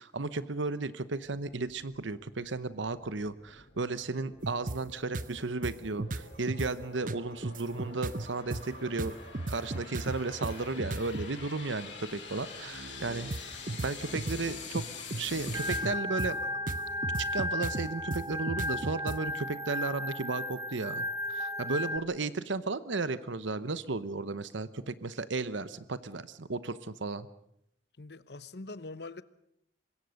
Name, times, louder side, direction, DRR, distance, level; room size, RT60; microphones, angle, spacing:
voice 1, 0.0-9.1 9.5-14.8 15.2-16.4 17.2-27.3, right 3 dB, 85° right, 0.9 m, -34 dB
sound 1, 1.2-15.8, left 5 dB, 80° left, 7.3 m, -47 dB
sound 2, 4.4-4.8 5.1-5.3 5.6-6.7 7.1-11.3 12.7-19.2, right 2 dB, 45° right, 0.9 m, -36 dB
Organ, 15.5-22.0, left 1 dB, 20° right, 1.0 m, -34 dB
voice 2, 28.0-29.2, left 3 dB, 60° left, 0.9 m, -43 dB
24.5 x 21.0 x 6.5 m
head